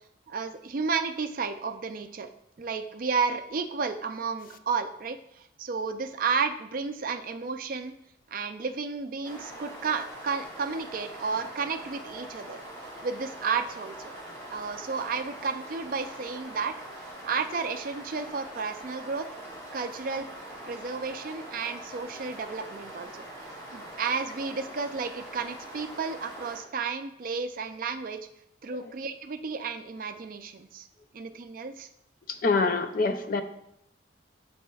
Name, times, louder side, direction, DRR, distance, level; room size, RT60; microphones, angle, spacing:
voice 1, 0.3-2.3 2.6-7.9 8.3-12.6 13.0-14.1 14.5-16.8 17.2-19.3 19.7-20.3 20.7-28.2 28.6-30.9 31.1-31.9, right 5 dB, 45° right, 8 dB, 0.4 m, -32 dB
sound 1, 9.2-26.6, right 1 dB, 20° left, 2.0 m, -43 dB
voice 2, 32.3-33.4, left 3 dB, 45° left, 9 dB, 0.4 m, -26 dB
12.0 x 4.2 x 2.3 m, 0.77 s
head